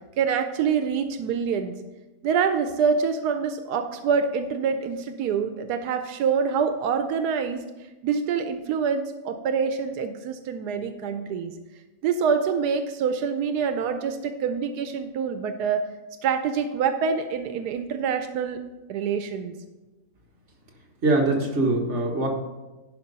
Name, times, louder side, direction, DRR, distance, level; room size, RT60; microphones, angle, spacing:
voice 1, 0.2-1.8 2.2-7.6 8.0-11.5 12.0-15.8 16.2-18.6 18.9-19.5, right 6 dB, 90° right, 8 dB, 1.2 m, -26 dB
voice 2, 21.0-22.3, right 2 dB, 45° right, 0 dB, 1.8 m, -22 dB
11.0 x 5.1 x 5.4 m, 1.1 s
omnidirectional pair, 1.6 m